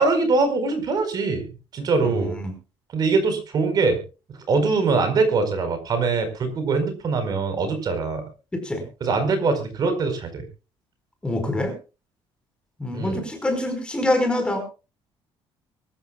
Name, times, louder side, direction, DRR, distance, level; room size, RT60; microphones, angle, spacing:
voice 1, 0.0-1.5 1.7-2.4 2.9-4.0 4.5-8.2 9.0-10.4 12.9-13.2, right 4 dB, 40° right, 9 dB, 4.7 m, -22 dB
voice 2, 2.0-2.5 8.5-8.8 11.2-11.7 12.8-14.6, left 1 dB, 10° left, 5 dB, 4.7 m, -25 dB
24.0 x 13.5 x 2.3 m, 0.32 s
cardioid pair, 155°, 10 cm